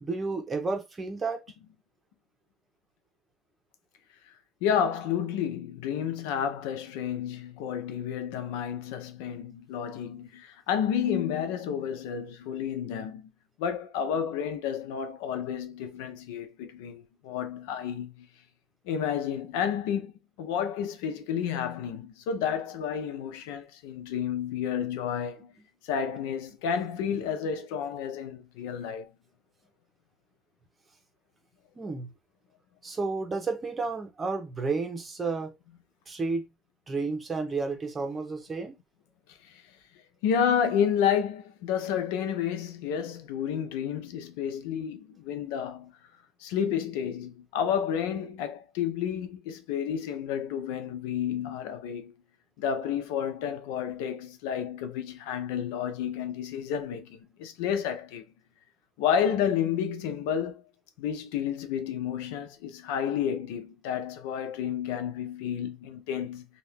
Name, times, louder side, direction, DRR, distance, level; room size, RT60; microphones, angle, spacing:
voice 1, 0.0-1.4 27.1-27.2 31.8-32.1 32.8-35.5 36.1-36.5 36.9-38.8, right 4 dB, 25° right, 0.9 m, -31 dB
voice 2, 4.6-13.3 13.6-18.3 18.9-20.1 20.4-25.5 25.8-29.1 40.2-45.9 46.4-52.1 52.6-58.2 59.0-60.6 61.0-66.5, left 8 dB, 90° left, 0.6 m, -30 dB
2.8 x 2.4 x 3.5 m
cardioid pair, 110°, 0 cm